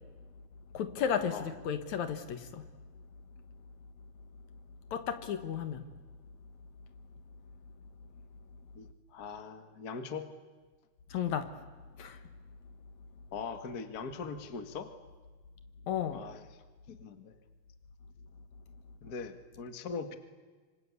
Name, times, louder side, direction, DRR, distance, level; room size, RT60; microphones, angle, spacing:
voice 1, 0.7-2.7 4.9-5.9 11.1-11.5 12.0-12.3 15.9-16.3, left 8 dB, 65° left, 10 dB, 2.6 m, -34 dB
voice 2, 8.7-10.3 13.3-14.9 16.1-16.4 16.9-17.4 19.0-20.2, left 5 dB, 35° left, 9 dB, 1.8 m, -41 dB
26.0 x 25.5 x 8.4 m, 1.4 s
omnidirectional pair, 3.6 m